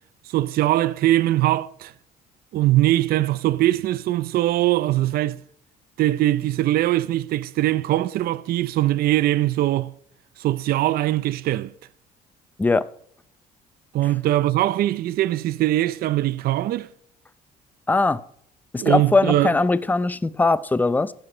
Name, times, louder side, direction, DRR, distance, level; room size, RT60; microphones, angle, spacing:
voice 1, 0.2-1.9 2.5-5.4 6.0-9.9 10.4-11.7 13.9-16.9 18.8-19.5, right 15 dB, 65° right, 0.5 m, -21 dB
voice 2, 17.9-18.2 18.7-21.1, left 3 dB, 10° left, 0.5 m, -20 dB
14.5 x 9.8 x 5.5 m
cardioid pair, 110°, 17 cm